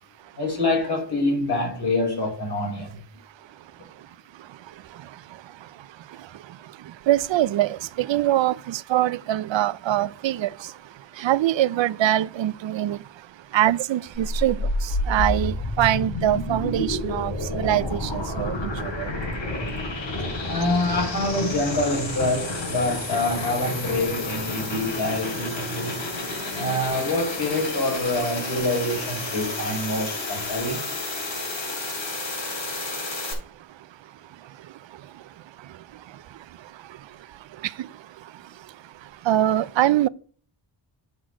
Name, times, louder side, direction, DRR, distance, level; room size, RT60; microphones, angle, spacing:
voice 1, 0.4-3.0 20.5-26.0 26.5-30.8, left 2 dB, 60° left, 5.1 m, -26 dB
voice 2, 3.2-20.5 25.9-26.6 31.2-40.1, right 13 dB, 85° right, 0.5 m, -27 dB
sound 1, 14.1-33.3, left 2 dB, 80° left, 5.3 m, -30 dB
7.9 x 6.1 x 6.1 m
wide cardioid pair, 165°, 44 cm